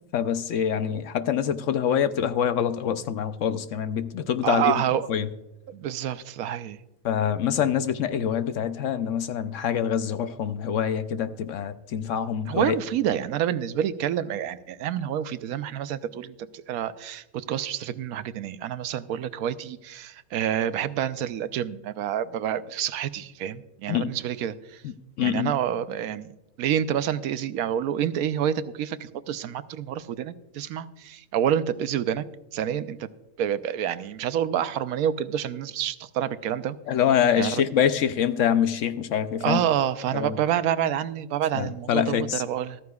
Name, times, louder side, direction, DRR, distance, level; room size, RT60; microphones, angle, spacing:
voice 1, 0.1-4.7 5.1-5.3 7.0-12.8 23.9-24.1 24.8-25.5 36.9-39.6 40.1-40.3 41.5-42.4, left 8 dB, 65° left, 11 dB, 0.9 m, -25 dB
voice 2, 4.4-5.1 5.7-6.8 12.5-24.8 25.2-32.2 32.5-33.1 33.4-36.8 37.4-37.6 39.4-42.8, right 10 dB, 80° right, 13 dB, 1.1 m, -28 dB
14.0 x 13.5 x 2.3 m, 0.94 s
omnidirectional pair, 1.5 m